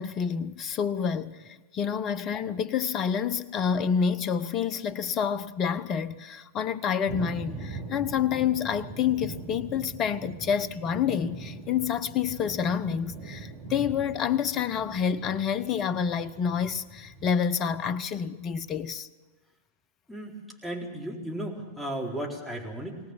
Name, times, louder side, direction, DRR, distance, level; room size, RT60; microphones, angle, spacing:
voice 1, 0.0-19.1, left 7 dB, 30° left, 0.9 m, -28 dB
sound 1, 7.1-17.3, right 3 dB, 40° right, 5.4 m, -42 dB
voice 2, 20.1-23.0, right 1 dB, ahead, 4.2 m, -35 dB
21.5 x 18.5 x 7.5 m
figure-of-eight pair, 95°, 0 cm